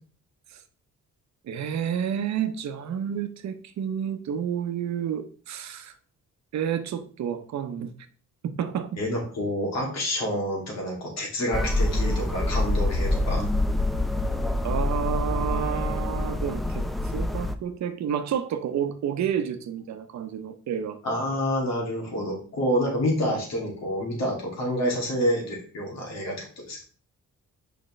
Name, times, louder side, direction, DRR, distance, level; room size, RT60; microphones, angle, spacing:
voice 1, 1.4-5.9 6.5-7.9 8.4-8.9 14.6-16.8 17.1-21.0, right 8 dB, 70° right, 0.8 m, -30 dB
voice 2, 9.0-13.4 21.0-26.8, equal, 65° left, 2.7 m, -28 dB
sound 1, 11.5-17.5, left 1 dB, ahead, 0.4 m, -26 dB
6.6 x 5.1 x 3.2 m
cardioid pair, 150°, 29 cm